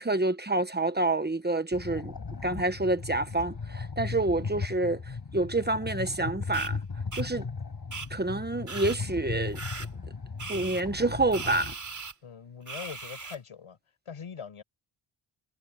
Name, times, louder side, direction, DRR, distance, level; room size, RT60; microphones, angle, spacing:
voice 1, 0.0-2.1 2.4-6.8 7.1-7.5 8.1-9.6 10.5-11.7, right 2 dB, 20° right, 1.2 m, -28 dB
sound 1, 1.7-11.7, left 4 dB, 45° left, 6.3 m, -37 dB
sound 2, 6.5-6.7 7.1-7.2 7.9-8.1 8.7-9.0 9.6-9.9 10.4-10.8 11.3-12.1 12.7-13.4, right 4 dB, 35° right, 3.1 m, -38 dB
voice 2, 12.2-13.8 14.0-14.6, left 7 dB, 85° left, 6.6 m, -42 dB
wide cardioid pair, 130°, 49 cm